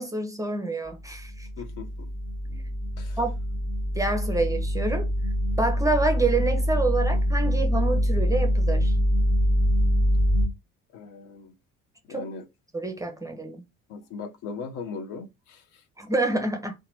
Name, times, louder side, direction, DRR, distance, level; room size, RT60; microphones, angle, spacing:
voice 1, 0.0-1.5 2.5-2.6 3.2-3.4 3.9-5.1 5.6-9.0 12.1-12.2 12.7-13.6 16.0-16.7, right 2 dB, 10° right, 0.6 m, -27 dB
sound 1, 1.1-10.5, equal, 25° left, 1.1 m, -24 dB
voice 2, 1.6-2.1 3.0-3.2 10.9-11.5 12.1-12.4 13.9-15.8, left 5 dB, 50° left, 0.7 m, -38 dB
2.8 x 2.2 x 3.0 m
figure-of-eight pair, 55°, 43 cm